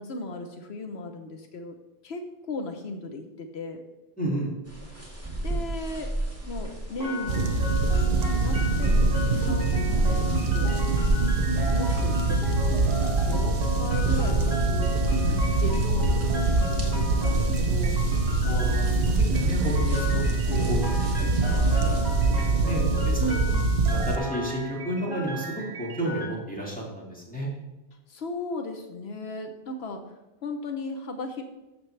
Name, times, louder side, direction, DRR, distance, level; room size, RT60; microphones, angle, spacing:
voice 1, 0.0-1.8 2.0-2.2 2.5-3.8 5.4-6.2 6.4-7.6 8.1-10.9 11.7-12.8 13.2-18.0 23.2-23.8 28.1-30.0 30.4-31.4, left 2 dB, 80° left, 5 dB, 1.1 m, -36 dB
voice 2, 4.2-4.5 18.4-23.2 23.9-25.5 25.8-27.5, right 1 dB, 10° left, -4 dB, 2.4 m, -32 dB
sound 1, 4.7-22.2, right 1 dB, 15° right, 1.9 m, -34 dB
sound 2, 7.0-26.3, left 1 dB, 40° right, 2.7 m, -36 dB
sound 3, 7.3-24.2, right 3 dB, 70° right, 1.1 m, -24 dB
13.0 x 7.1 x 3.3 m, 1.1 s
omnidirectional pair, 1.1 m